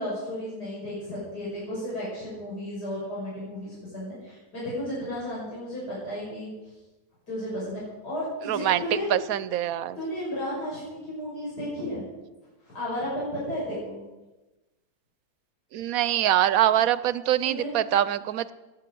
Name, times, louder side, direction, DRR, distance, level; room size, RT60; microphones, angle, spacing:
voice 1, 0.0-6.5 7.3-9.1 10.0-12.0 12.6-14.0 17.4-17.7, left 1 dB, 85° left, -8 dB, 6.5 m, -33 dB
voice 2, 8.5-8.8 9.1-10.0 15.7-18.5, right 12 dB, 65° right, 16 dB, 1.1 m, -24 dB
15.5 x 9.7 x 7.7 m, 1.1 s
omnidirectional pair, 1.7 m